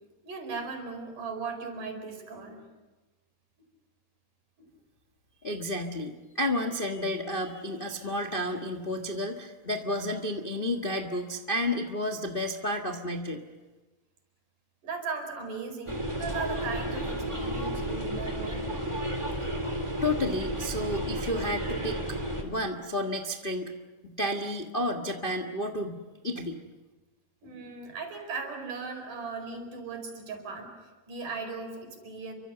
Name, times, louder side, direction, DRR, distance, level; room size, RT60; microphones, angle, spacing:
voice 1, 0.2-2.6 4.6-4.7 14.8-18.7 27.4-30.7 31.1-32.3, right 4 dB, 70° right, 4 dB, 6.3 m, -37 dB
voice 2, 5.4-13.4 20.0-22.2 22.4-23.7 24.0-26.0 26.2-26.6, left 1 dB, 45° left, 3 dB, 0.6 m, -31 dB
sound 1, 15.9-22.4, right 1 dB, 10° right, 3.2 m, -32 dB
29.5 x 24.5 x 6.9 m, 1.2 s
omnidirectional pair, 3.8 m